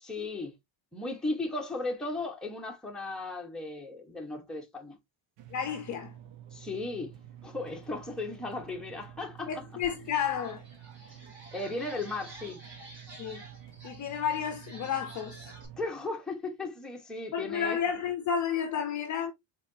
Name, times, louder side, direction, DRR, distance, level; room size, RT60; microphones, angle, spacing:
voice 1, 0.0-0.5 0.9-5.0 6.5-7.1 7.4-9.5 11.0-12.6 15.8-17.8, left 2 dB, ahead, 1.0 m, -36 dB
sound 1, 5.4-15.9, right 10 dB, 60° right, 0.9 m, -50 dB
voice 2, 5.5-6.1 9.5-10.6 13.2-13.4 13.8-15.5 17.3-19.3, left 8 dB, 35° left, 0.7 m, -31 dB
sound 2, 9.8-9.9 10.3-15.7, right 2 dB, 30° right, 3.2 m, -50 dB
4.9 x 3.8 x 2.6 m
cardioid pair, 160°, 50 cm